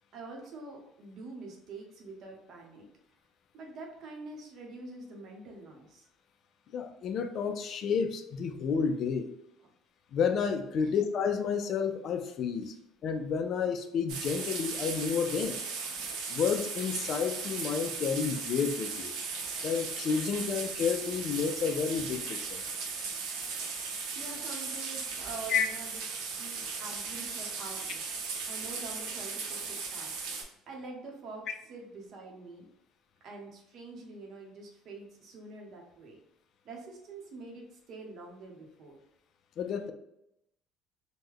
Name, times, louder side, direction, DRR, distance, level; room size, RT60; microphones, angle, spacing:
voice 1, 0.1-2.9 3.5-6.1 10.8-11.0 24.1-26.0 26.4-28.0 28.5-30.2 30.7-32.7 33.2-36.2 36.6-39.0, right 3 dB, 50° right, 0 dB, 0.8 m, -46 dB
voice 2, 6.7-9.3 10.1-12.7 13.0-15.6 16.3-19.1 19.6-22.6 25.5-25.7 39.6-39.9, left 6 dB, 45° left, 7 dB, 0.4 m, -30 dB
sound 1, 14.1-30.4, right 5 dB, 80° right, 0.7 m, -37 dB
3.1 x 2.1 x 3.6 m, 0.81 s
cardioid pair, 150°, 0 cm